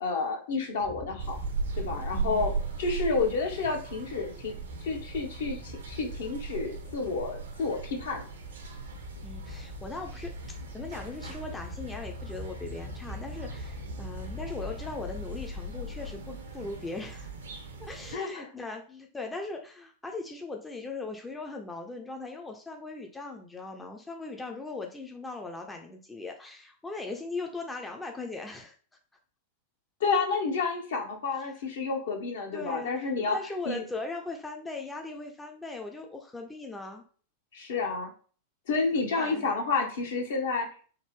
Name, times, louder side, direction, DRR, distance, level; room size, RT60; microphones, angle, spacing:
voice 1, 0.0-1.4 1.7-2.5 2.8-4.6 4.8-8.2 18.1-18.5 30.0-33.4 33.7-33.8 37.5-38.1 38.7-40.7, left 4 dB, 60° left, 3 dB, 0.7 m, -30 dB
sound 1, 0.8-16.2, left 3 dB, 35° left, 0.8 m, -43 dB
sound 2, 1.2-18.2, right 5 dB, 70° right, 0.5 m, -39 dB
voice 2, 2.1-2.4 9.2-10.3 10.7-17.3 17.8-28.8 32.5-37.0 39.2-39.5, left 3 dB, 10° left, 3 dB, 0.4 m, -39 dB
3.5 x 2.0 x 3.1 m, 0.42 s
figure-of-eight pair, 90°, 0 cm